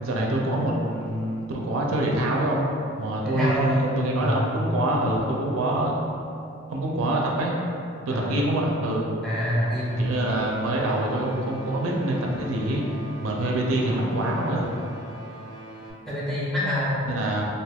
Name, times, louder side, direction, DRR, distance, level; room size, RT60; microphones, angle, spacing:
voice 1, 0.0-2.7 3.0-6.0 6.7-7.5 8.1-9.2 10.0-12.8 13.2-14.7 17.1-17.4, right 1 dB, 75° right, -1 dB, 0.4 m, -25 dB
voice 2, 3.2-3.9 4.2-4.4 8.1-8.4 9.2-9.9 13.8-14.4 16.1-17.0, equal, ahead, -8 dB, 0.5 m, -26 dB
sound 1, 9.5-15.9, right 1 dB, 70° left, 1.0 m, -41 dB
3.3 x 2.6 x 2.3 m, 2.6 s
head